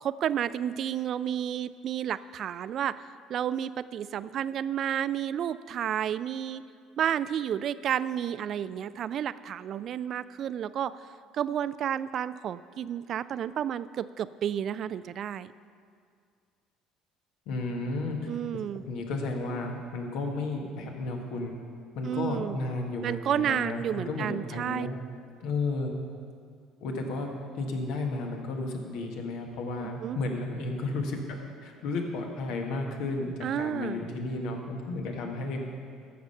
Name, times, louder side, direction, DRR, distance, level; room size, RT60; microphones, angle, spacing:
voice 1, 0.0-3.0 3.3-6.6 7.0-10.9 11.3-15.5 18.3-18.8 22.0-22.6 23.0-24.9 29.8-30.2 33.4-34.0, right 9 dB, 55° right, 16 dB, 0.4 m, -31 dB
voice 2, 17.5-18.2 18.9-21.5 21.9-24.9 25.4-25.9 26.8-35.7, left 3 dB, 70° left, 2 dB, 1.5 m, -33 dB
14.0 x 6.8 x 5.4 m, 2.2 s
hypercardioid pair, 60°, 0 cm